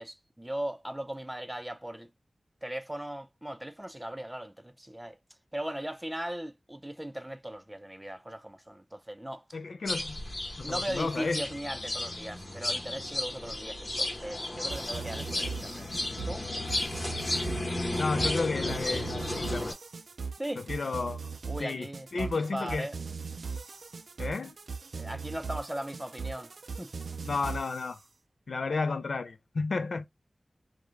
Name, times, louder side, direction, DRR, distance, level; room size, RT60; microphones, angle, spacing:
voice 1, 0.0-2.1 2.6-5.2 5.5-9.6 10.6-15.9 16.2-16.5 20.4-20.6 21.4-22.9 24.9-26.9, right 1 dB, 15° right, 0.4 m, -38 dB
voice 2, 9.5-10.2 10.6-11.4 18.0-19.8 20.7-21.3 21.6-22.9 24.2-24.6 27.2-28.0 28.5-30.1, left 4 dB, 85° left, 0.4 m, -32 dB
sound 1, 9.9-19.7, left 1 dB, 50° left, 1.0 m, -33 dB
sound 2, 14.7-27.9, right 5 dB, 85° right, 0.3 m, -39 dB
2.4 x 2.1 x 3.1 m
wide cardioid pair, 55°, 0 cm